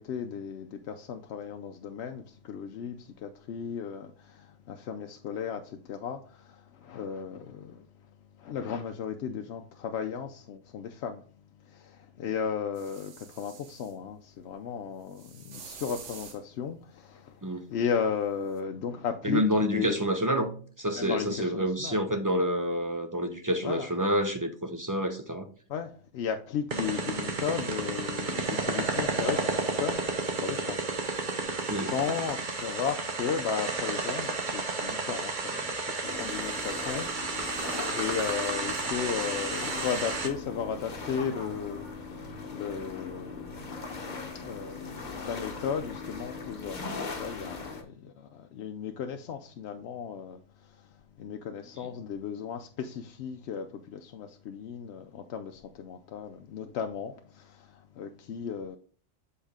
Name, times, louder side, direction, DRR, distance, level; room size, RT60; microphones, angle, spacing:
voice 1, 0.0-7.9 8.4-11.2 11.6-20.1 20.9-22.0 23.6-23.9 25.7-30.0 30.4-30.8 31.7-37.1 37.9-43.5 44.2-50.9 51.2-58.8, left 7 dB, 70° left, 0.8 m, -35 dB
sound 1, 12.7-13.9 15.1-16.4 18.6-18.7, right 6 dB, 75° right, 1.2 m, -47 dB
voice 2, 19.2-20.5 20.8-25.5 31.7-31.9 51.8-51.9, equal, 25° right, 0.4 m, -28 dB
sound 2, 26.7-40.3, right 3 dB, 45° right, 1.1 m, -32 dB
sound 3, 36.0-47.8, left 4 dB, 40° left, 1.0 m, -39 dB
7.3 x 4.3 x 3.5 m
omnidirectional pair, 1.2 m